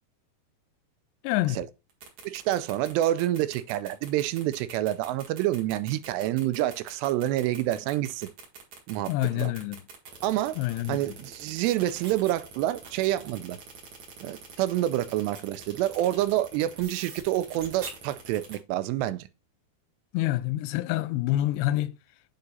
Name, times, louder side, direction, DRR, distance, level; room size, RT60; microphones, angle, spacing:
voice 1, 1.2-1.6 9.1-9.8 10.6-11.0 20.1-22.0, left 15 dB, 85° left, 2.6 m, -27 dB
sound 1, 1.9-18.6, right 5 dB, 50° right, 2.5 m, -44 dB
voice 2, 2.2-8.3 8.9-9.5 10.2-10.6 10.9-13.6 14.2-19.3, right 14 dB, 85° right, 2.7 m, -28 dB
8.8 x 4.0 x 4.1 m
omnidirectional pair, 4.8 m